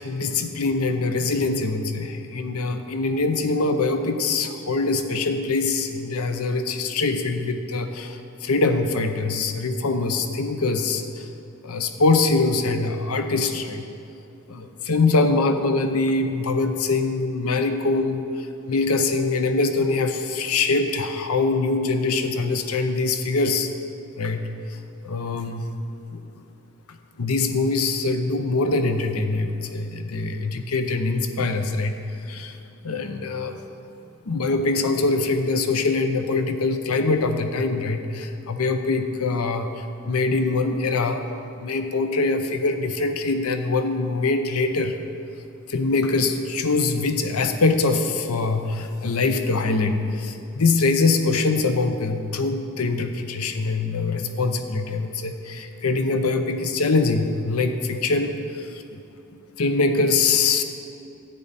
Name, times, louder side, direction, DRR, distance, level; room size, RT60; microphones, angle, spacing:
voice 1, 0.0-11.3 11.6-13.8 14.5-23.7 24.2-24.8 25.0-25.7 26.1-26.2 26.9-32.6 32.8-33.5 34.3-41.3 41.5-45.0 45.7-59.0 59.6-60.6, left 3 dB, 85° left, 7 dB, 0.7 m, -23 dB
10.0 x 9.0 x 4.1 m, 2.8 s
head